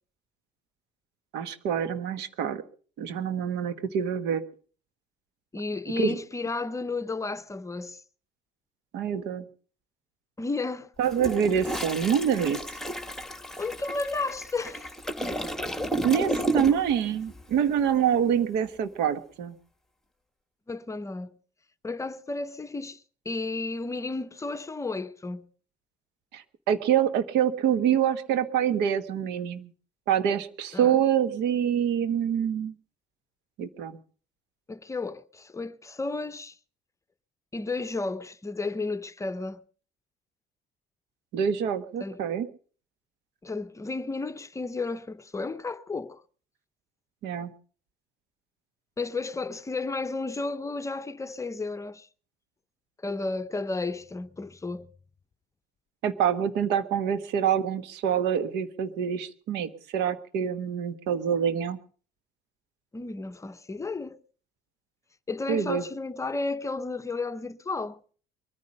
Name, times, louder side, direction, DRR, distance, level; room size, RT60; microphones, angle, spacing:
voice 1, 1.3-2.6 3.0-4.4 6.0-6.2 8.9-9.4 11.0-12.8 16.0-19.5 26.3-29.7 30.1-32.7 33.6-34.0 41.3-42.5 47.2-47.5 56.0-61.8 65.5-65.8, right 8 dB, 85° right, 1.3 m, -26 dB
voice 2, 5.5-8.0 10.4-10.9 13.6-14.9 20.7-21.4 21.8-25.5 30.7-30.9 34.7-36.6 37.5-39.6 42.0-42.2 43.4-46.2 49.0-52.1 53.0-54.9 62.9-64.2 65.3-68.0, left 3 dB, 20° left, 0.7 m, -33 dB
Toilet flush, 11.0-17.0 17.3-17.5, right 1 dB, ahead, 1.4 m, -32 dB
23.0 x 9.8 x 5.3 m
cardioid pair, 110°, 17 cm